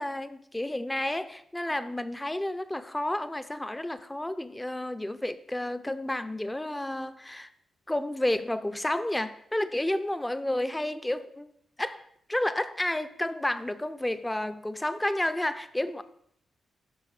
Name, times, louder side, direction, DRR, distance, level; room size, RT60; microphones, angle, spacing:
voice 1, 0.0-7.5 7.9-11.5 11.8-16.0, left 1 dB, 10° left, 0.6 m, -31 dB
12.5 x 4.9 x 4.9 m
cardioid pair, 100°, 0 cm